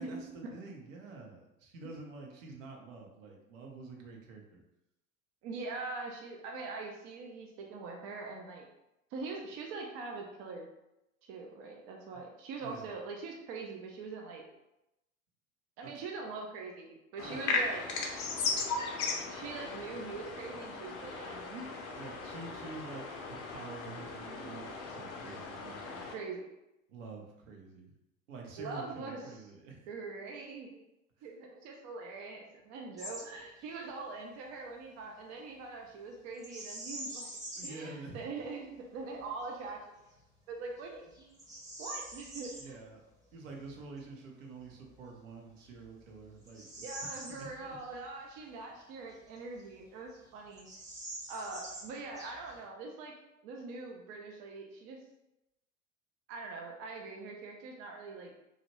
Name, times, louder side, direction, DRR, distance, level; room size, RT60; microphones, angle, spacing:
voice 1, 0.0-4.6 12.1-12.2 12.6-12.9 15.9-16.0 17.2-17.4 22.0-26.1 26.9-27.9 28.3-29.9 31.2-31.3 37.6-38.3 42.6-43.0 43.3-47.8, right 3 dB, 65° right, 0 dB, 0.8 m, -48 dB
voice 2, 5.4-8.7 9.1-10.7 11.2-14.4 15.8-17.8 19.3-21.7 26.1-26.5 28.6-29.3 29.9-30.8 31.2-37.3 37.6-39.8 40.5-41.4 41.8-42.8 46.8-50.7 51.3-53.1 53.4-55.0 56.3-58.3, right 3 dB, 35° right, 1 dB, 0.5 m, -43 dB
sound 1, 17.2-26.1, left 3 dB, 35° left, 0.6 m, -37 dB
Bird vocalization bird call bird song, 33.0-33.3 33.6-33.8 36.4-37.9 38.4-38.5 39.1-39.5 40.1-40.2 40.8-42.7 44.8-44.9 45.5-48.0 48.3-48.4 49.1-49.9 50.1-50.2 50.5-52.7, right 1 dB, 10° right, 0.8 m, -45 dB
2.9 x 2.4 x 3.0 m, 0.91 s
figure-of-eight pair, 80°, 42 cm